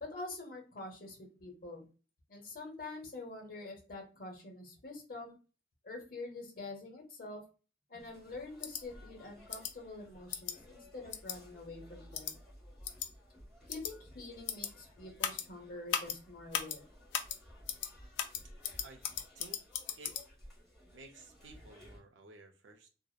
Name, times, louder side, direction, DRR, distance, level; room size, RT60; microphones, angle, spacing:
voice 1, 0.0-1.8 2.3-5.4 5.8-7.4 7.9-12.3 13.7-16.9, left 2 dB, 50° left, 0.8 m, -46 dB
sound 1, 8.0-22.0, equal, ahead, 1.0 m, -57 dB
sound 2, 8.6-8.8 9.5-9.7 10.3-10.5 11.1-11.4 12.1-12.3 12.8-13.1 13.7-13.9 14.5-14.7 15.2-15.4 15.9-16.2 16.5-16.8 17.1-17.4 17.7-17.9 18.2-20.2, left 9 dB, 70° left, 0.3 m, -36 dB
voice 2, 20.9-22.9, right 3 dB, 80° right, 0.5 m, -54 dB
2.7 x 2.0 x 2.3 m
head